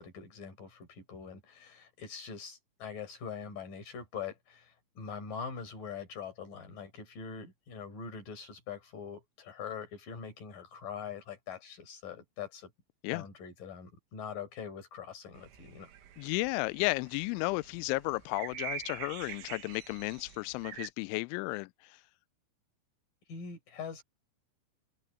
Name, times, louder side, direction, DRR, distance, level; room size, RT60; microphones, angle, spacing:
voice 1, 0.0-12.7 13.1-15.9 23.3-24.0, left 6 dB, 40° left, 6.5 m, -43 dB
sound 1, 15.3-20.9, right 9 dB, 80° right, 4.6 m, -45 dB
voice 2, 16.2-22.0, left 24 dB, 90° left, 2.7 m, -33 dB
omnidirectional pair, 5.9 m